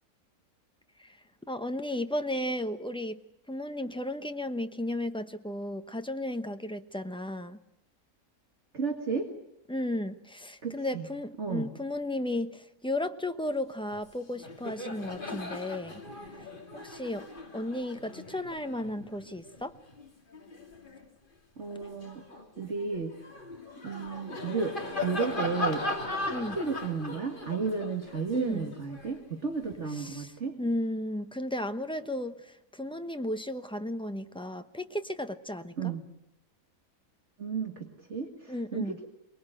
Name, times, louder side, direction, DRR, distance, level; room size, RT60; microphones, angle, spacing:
voice 1, 1.5-3.2 3.5-7.6 9.7-16.0 16.4-16.5 16.8-17.3 17.5-19.8 26.3-26.6 28.3-28.7 29.9-35.9 38.5-39.0, left 1 dB, 5° left, 8 dB, 0.8 m, -34 dB
voice 2, 8.7-9.3 10.6-11.1 11.4-11.7 21.6-23.1 23.8-25.9 26.2-30.6 35.8-36.0 37.4-39.1, right 5 dB, 55° right, 3 dB, 2.1 m, -33 dB
Laughter, 13.9-14.1 14.3-21.1 21.6-29.8, left 2 dB, 35° left, 2.5 m, -39 dB
23.5 x 20.5 x 8.9 m, 0.80 s
omnidirectional pair, 1.5 m